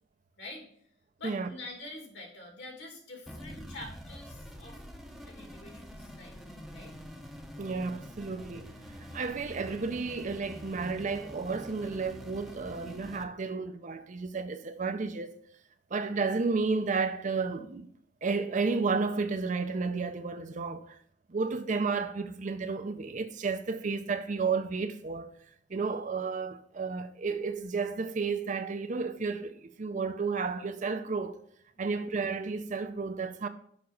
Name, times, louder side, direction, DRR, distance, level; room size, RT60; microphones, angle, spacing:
voice 1, 0.4-0.7 1.2-4.8 5.2-6.4 6.7-6.9 31.7-32.0, left 2 dB, 65° left, 2.6 m, -46 dB
sound 1, 3.3-13.2, equal, ahead, 0.7 m, -46 dB
voice 2, 7.6-8.7 9.1-15.3 15.9-17.9 18.2-21.0 21.3-25.3 25.7-31.4 31.8-33.5, right 4 dB, 40° right, 0.5 m, -32 dB
6.9 x 5.3 x 5.1 m
head